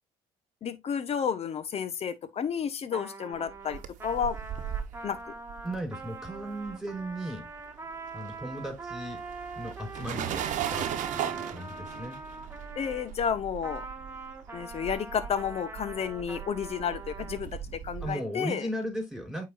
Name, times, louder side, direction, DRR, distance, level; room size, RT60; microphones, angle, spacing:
voice 1, 0.6-4.4 5.0-5.3 12.8-13.9 14.5-18.7, left 7 dB, 50° left, 1.1 m, -31 dB
Trumpet, 2.9-13.1 13.6-17.4, right 3 dB, 15° right, 1.5 m, -43 dB
sound 1, 3.5-7.1 7.4-18.1, right 10 dB, 70° right, 1.0 m, -38 dB
voice 2, 5.6-7.5 8.1-9.2 9.5-12.2 18.0-19.4, right 1 dB, ahead, 4.7 m, -36 dB
9.0 x 4.2 x 2.5 m
cardioid pair, 85°, 13 cm